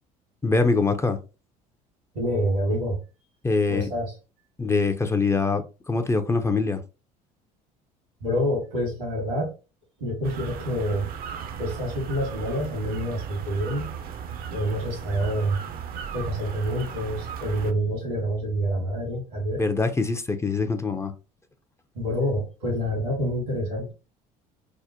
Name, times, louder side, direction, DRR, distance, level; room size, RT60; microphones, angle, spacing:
voice 1, 0.4-1.2 3.4-3.9 4.6-6.8 19.6-21.1, left 4 dB, 15° left, 0.5 m, -24 dB
voice 2, 2.1-3.0 3.7-4.1 8.2-9.5 10.0-11.1 11.6-13.9 14.5-15.6 16.1-19.6 21.9-23.9, equal, 85° right, 1.7 m, -27 dB
sound 1, 10.2-17.7, right 8 dB, 50° right, 0.5 m, -36 dB
3.6 x 2.1 x 2.8 m
hypercardioid pair, 70°, 19 cm